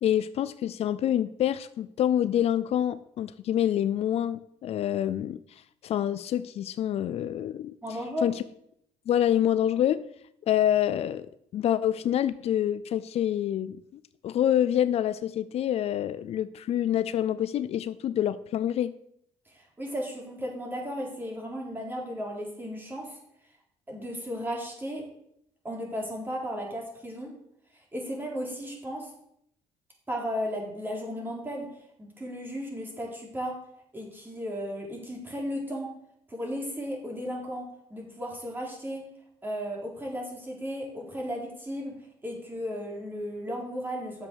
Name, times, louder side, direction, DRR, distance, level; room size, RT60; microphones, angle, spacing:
voice 1, 0.0-5.4 5.8-7.7 8.2-8.4 9.1-10.0 10.5-13.8 14.2-18.9, left 11 dB, 60° left, 14 dB, 0.5 m, -26 dB
voice 2, 7.8-8.2 19.5-23.2 23.9-25.0 25.6-27.3 27.9-29.1 30.1-31.7 32.0-33.6 33.9-35.9 36.3-39.0 39.4-41.9 42.2-44.3, equal, 15° right, -1 dB, 3.8 m, -35 dB
9.7 x 7.0 x 6.3 m, 0.73 s
cardioid pair, 95°, 12 cm